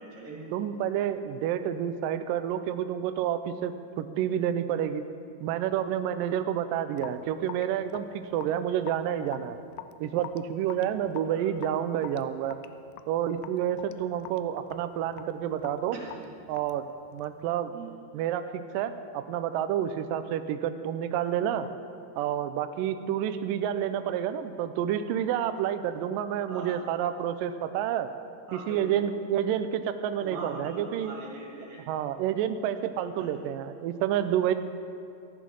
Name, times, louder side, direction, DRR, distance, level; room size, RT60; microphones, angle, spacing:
voice 1, 0.0-0.5 11.3-11.5 15.9-16.3 17.7-17.9 26.5-26.9 28.5-28.9 30.2-31.9 33.2-33.3, right 3 dB, 70° right, -2 dB, 4.1 m, -41 dB
voice 2, 0.5-5.0 5.4-9.6 10.0-12.6 13.1-16.0 16.5-16.9 17.1-17.7 18.1-21.7 22.2-28.1 28.5-31.1 31.9-34.5, right 10 dB, 90° right, 10 dB, 1.9 m, -29 dB
Raindrop / Drip, 7.0-17.5, left 13 dB, 85° left, 2.4 m, -46 dB
14.0 x 10.5 x 6.3 m, 2.4 s
omnidirectional pair, 4.6 m